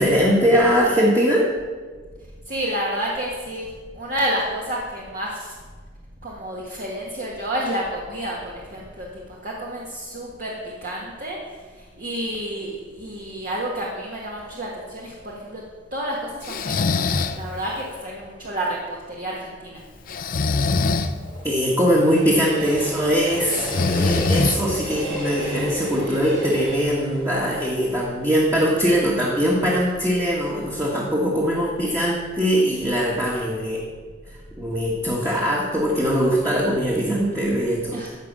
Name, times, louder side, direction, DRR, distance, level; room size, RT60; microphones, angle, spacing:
voice 1, 0.0-1.4 21.4-33.8 34.6-38.0, equal, 15° right, -4 dB, 1.6 m, -21 dB
voice 2, 2.5-3.7 3.9-5.5 6.2-8.4 8.7-11.4 12.0-15.6 15.9-19.8 35.3-35.6 37.9-38.2, right 1 dB, 45° right, -3 dB, 1.6 m, -30 dB
Breathing, 16.5-17.4 20.1-21.1 23.5-24.9, left 3 dB, 45° left, 0.6 m, -22 dB
Train, 20.1-29.2 29.6-29.7, right 1 dB, 75° right, 3.7 m, -34 dB
14.5 x 5.2 x 7.4 m, 1.5 s
head